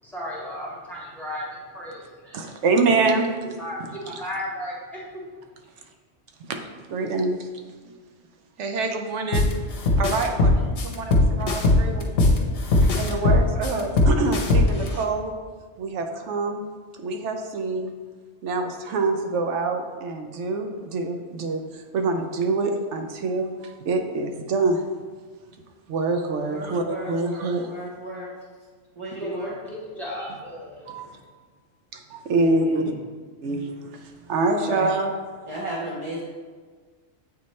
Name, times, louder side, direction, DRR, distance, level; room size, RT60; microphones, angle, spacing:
voice 1, 0.0-2.4 3.6-5.2 29.2-31.2, equal, ahead, -6 dB, 1.7 m, -35 dB
voice 2, 2.3-3.3 3.8-3.9 6.4-6.6 6.9-7.5 7.8-7.9 8.6-9.5 10.0-12.4 12.8-15.3 15.8-16.6 17.0-17.9 18.4-24.8 25.9-27.7 30.9-31.1 31.9-32.8 33.4-35.1, right 3 dB, 80° right, 5 dB, 0.9 m, -26 dB
sound 1, 9.3-9.5 9.9-12.4 12.7-14.9, left 2 dB, 60° left, 1.0 m, -18 dB
voice 3, 26.4-28.3 29.0-29.6 32.3-33.0 34.6-34.9 35.5-36.2, right 1 dB, 30° right, -5 dB, 0.7 m, -34 dB
8.2 x 3.2 x 4.1 m, 1.5 s
omnidirectional pair, 1.2 m